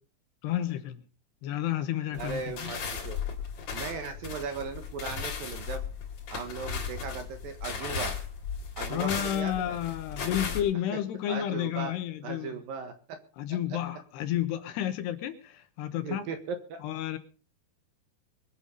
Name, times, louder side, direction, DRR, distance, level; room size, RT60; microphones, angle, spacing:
voice 1, 0.4-1.0 1.4-2.8 8.9-12.5 13.4-16.2 16.8-17.2, left 12 dB, 75° left, 3.1 m, -31 dB
voice 2, 2.1-3.2 3.7-5.8 6.3-8.2 8.8-9.8 10.9-11.0 11.3-11.9 12.2-13.2 13.7-13.8 16.0-16.8, right 5 dB, 60° right, 2.9 m, -37 dB
sound 1, 2.2-10.6, left 6 dB, 45° left, 3.7 m, -36 dB
22.5 x 8.1 x 5.4 m
omnidirectional pair, 5.2 m